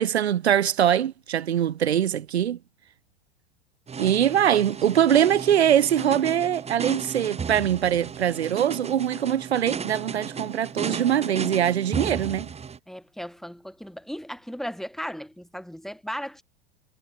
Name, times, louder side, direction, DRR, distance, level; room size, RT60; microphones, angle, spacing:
voice 1, 0.0-2.6 4.0-12.5, right 10 dB, 85° right, 0.9 m, -22 dB
sound 1, 3.9-12.8, right 6 dB, 20° right, 2.2 m, -34 dB
voice 2, 12.9-16.4, equal, ahead, 2.7 m, -36 dB
hypercardioid pair, 90°, 32 cm